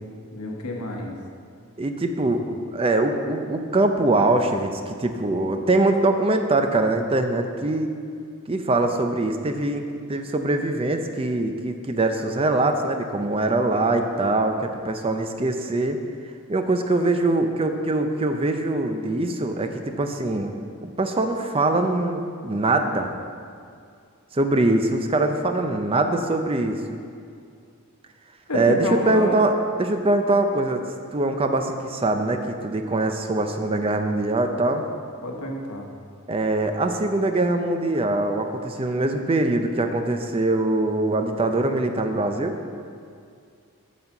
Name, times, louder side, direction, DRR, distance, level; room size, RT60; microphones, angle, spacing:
voice 1, 0.3-1.2 2.2-2.3 28.5-29.4 35.2-35.9, left 1 dB, 90° left, 2 dB, 1.1 m, -29 dB
voice 2, 1.8-2.4 2.7-7.9 8.5-9.8 10.1-16.0 16.5-23.1 24.3-27.0 28.5-30.8 31.1-34.8 36.3-42.5, right 2 dB, 25° right, 6 dB, 0.5 m, -23 dB
8.6 x 4.2 x 6.9 m, 2.4 s
head